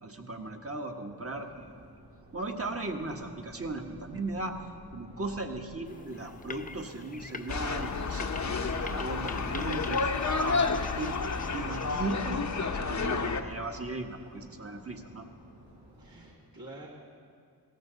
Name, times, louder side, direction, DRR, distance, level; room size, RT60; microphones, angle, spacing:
voice 1, 0.0-1.8 2.3-4.6 4.9-15.3, right 2 dB, 35° right, 3 dB, 1.4 m, -37 dB
Subway metro underground, 1.3-16.3, right 1 dB, 75° right, 4.7 m, -54 dB
sound 1, 5.9-12.8, left 4 dB, 20° left, 0.5 m, -46 dB
sound 2, 7.5-13.4, left 4 dB, 45° left, 0.8 m, -30 dB
voice 2, 16.0-16.9, right 2 dB, 60° right, -6 dB, 2.3 m, -48 dB
18.0 x 15.0 x 4.0 m, 2.2 s
cardioid pair, 65°, 40 cm